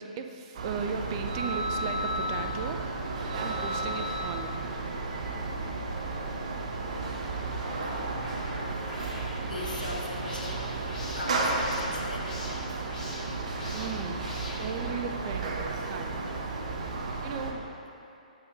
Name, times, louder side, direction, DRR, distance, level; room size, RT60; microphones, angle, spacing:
voice 1, 0.0-2.8 3.3-4.6 13.7-16.3 17.2-17.6, right 6 dB, 35° right, 6 dB, 0.4 m, -37 dB
sound 1, 0.5-17.5, right 2 dB, 55° right, 0.8 m, -33 dB
sound 2, 7.4-15.6, left 1 dB, 10° left, 1.2 m, -44 dB
voice 2, 7.8-8.5 9.4-10.7 11.2-12.7, left 2 dB, 85° left, -1 dB, 1.0 m, -40 dB
7.9 x 4.6 x 3.7 m, 2.7 s
figure-of-eight pair, 125°, 4 cm